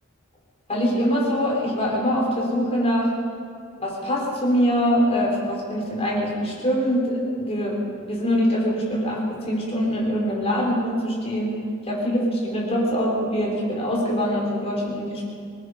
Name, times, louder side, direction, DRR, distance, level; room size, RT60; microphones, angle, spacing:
voice 1, 0.7-3.1 3.8-11.5 11.8-15.2, equal, 30° left, -3 dB, 5.0 m, -23 dB
25.5 x 19.5 x 5.3 m, 2.3 s
head